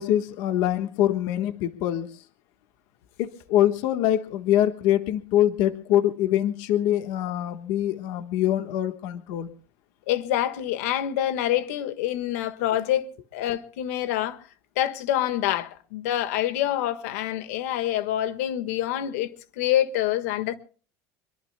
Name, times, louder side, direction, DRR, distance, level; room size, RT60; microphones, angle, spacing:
voice 1, 0.0-2.1 3.2-9.5, left 12 dB, 55° left, 1.3 m, -24 dB
voice 2, 10.1-14.4 14.7-19.3 19.6-20.5, left 12 dB, 90° left, 1.5 m, -26 dB
25.0 x 23.0 x 2.2 m
cardioid pair, 170°, 8 cm